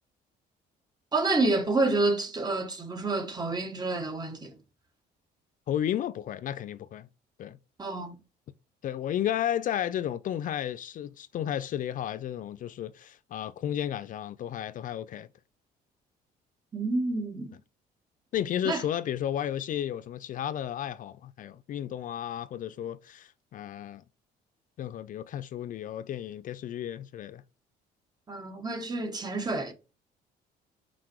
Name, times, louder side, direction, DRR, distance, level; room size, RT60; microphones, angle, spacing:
voice 1, 1.1-4.5 7.8-8.1 16.7-17.5 18.6-18.8 28.3-29.7, right 2 dB, 25° right, 1.7 m, -28 dB
voice 2, 5.7-7.1 7.4-7.6 8.8-15.3 18.3-24.0 24.8-27.4, left 10 dB, 50° left, 0.5 m, -33 dB
5.9 x 5.0 x 4.7 m
cardioid pair, 110°, 17 cm